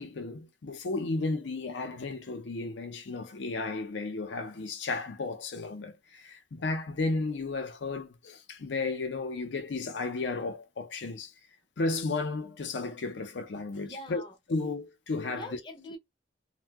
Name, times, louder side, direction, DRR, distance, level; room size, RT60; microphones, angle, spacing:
voice 1, 0.0-11.3 11.8-14.2 14.5-15.5, left 3 dB, 75° left, 0.5 m, -33 dB
voice 2, 13.7-14.4 15.3-16.0, left 1 dB, 25° left, 0.6 m, -43 dB
2.6 x 2.0 x 3.4 m
head